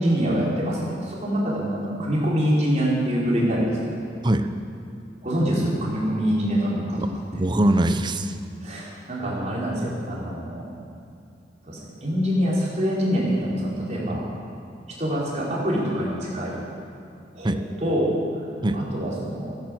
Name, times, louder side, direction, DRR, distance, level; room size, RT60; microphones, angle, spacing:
voice 1, 0.0-4.0 5.2-7.0 8.6-10.7 11.6-14.2 15.0-16.6 17.3-18.5 18.7-19.5, equal, 40° right, -6 dB, 4.6 m, -25 dB
voice 2, 7.0-8.3 14.1-14.2 17.4-17.6 18.6-18.8, right 1 dB, 25° right, 9 dB, 0.7 m, -22 dB
16.5 x 11.0 x 7.8 m, 2.5 s
head